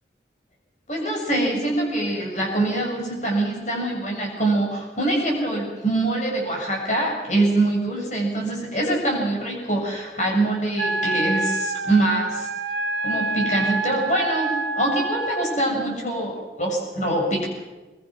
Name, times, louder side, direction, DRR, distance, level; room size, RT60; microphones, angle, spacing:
voice 1, 0.9-12.5 13.0-17.5, right 1 dB, 40° left, 0 dB, 7.5 m, -24 dB
Wind instrument woodwind instrument, 10.8-15.6, right 3 dB, 75° right, 1.2 m, -27 dB
23.0 x 22.0 x 6.2 m, 1.2 s
head